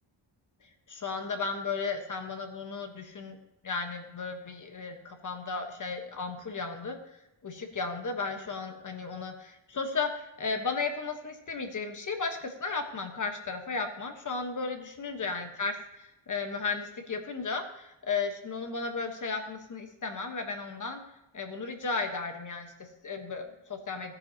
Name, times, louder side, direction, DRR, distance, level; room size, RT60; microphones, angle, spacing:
voice 1, 0.9-3.4 3.6-7.2 7.4-21.0 21.3-24.1, left 4 dB, 40° left, 5 dB, 1.3 m, -34 dB
16.5 x 9.6 x 2.9 m, 0.92 s
wide cardioid pair, 140°, 49 cm